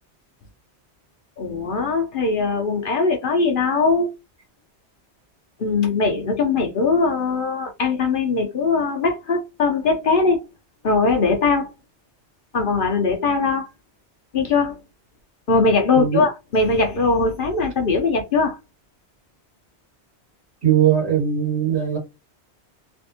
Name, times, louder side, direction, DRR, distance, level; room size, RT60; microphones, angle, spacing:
voice 1, 1.4-4.1 5.6-10.4 10.8-11.7 12.5-13.7 14.3-14.8 15.5-18.6, left 4 dB, 55° left, 0.8 m, -20 dB
voice 2, 20.6-22.0, right 9 dB, 70° right, 1.8 m, -19 dB
3.4 x 2.5 x 2.7 m
omnidirectional pair, 1.1 m